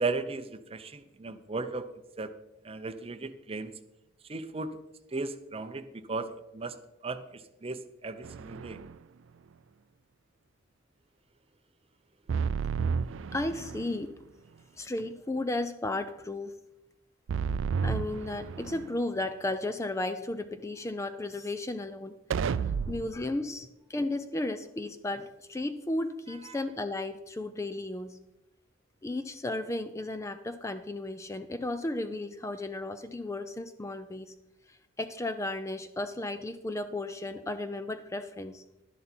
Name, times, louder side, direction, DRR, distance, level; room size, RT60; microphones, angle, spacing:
voice 1, 0.0-1.9 2.2-2.3 2.6-3.7 4.3-4.8 5.1-6.8 7.0-8.8 26.5-26.6, right 3 dB, 30° right, 10 dB, 0.6 m, -36 dB
sound 1, 8.2-9.0 12.3-14.0 17.3-19.0 22.3-23.2, right 6 dB, 75° right, 0.4 m, -32 dB
voice 2, 13.3-14.1 14.7-16.5 17.8-22.2 22.5-22.6 22.9-28.2 29.0-34.3 34.7-38.6, left 2 dB, 15° left, 10 dB, 0.4 m, -34 dB
11.5 x 11.0 x 4.4 m, 0.94 s
head